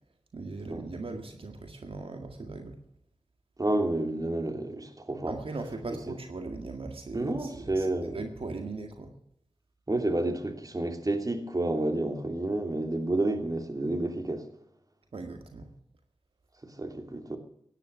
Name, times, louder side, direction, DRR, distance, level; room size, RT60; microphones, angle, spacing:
voice 1, 0.3-2.8 5.3-7.9 8.1-9.1 15.1-15.7, right 3 dB, 75° right, 1.9 m, -39 dB
voice 2, 3.6-5.4 7.1-8.2 9.9-14.4 16.6-17.4, right 2 dB, 40° right, 2.8 m, -30 dB
17.0 x 10.5 x 6.6 m
wide cardioid pair, 60°, 9 cm